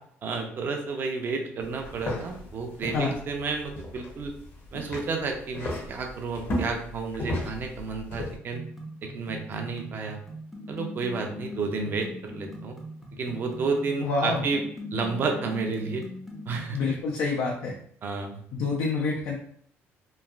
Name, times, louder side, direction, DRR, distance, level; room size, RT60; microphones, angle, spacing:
voice 1, 0.2-4.3 4.7-8.6 9.0-10.2 10.7-12.7 13.1-14.6 14.9-16.0 16.5-17.0 18.0-18.4, right 4 dB, 45° right, 3 dB, 0.5 m, -31 dB
sound 1, 1.6-8.4, left 1 dB, 50° left, 0.8 m, -36 dB
sound 2, 8.5-17.0, left 1 dB, ahead, 0.6 m, -40 dB
voice 2, 14.0-14.5 16.7-17.7 18.5-19.4, left 3 dB, 80° left, -2 dB, 0.5 m, -27 dB
3.1 x 2.4 x 2.3 m, 0.64 s
cardioid pair, 120°, 5 cm